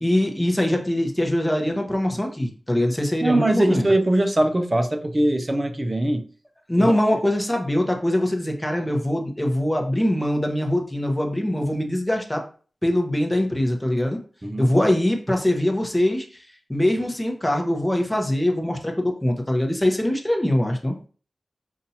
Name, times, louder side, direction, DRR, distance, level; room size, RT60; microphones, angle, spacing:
voice 1, 0.0-3.9 6.7-12.4 12.8-14.2 14.6-16.4 16.7-21.1, left 1 dB, 15° left, 0.9 m, -22 dB
voice 2, 3.2-6.2 6.8-6.9 14.4-14.7, right 1 dB, 30° right, 0.5 m, -21 dB
5.5 x 2.6 x 2.8 m
wide cardioid pair, 60°, 0 cm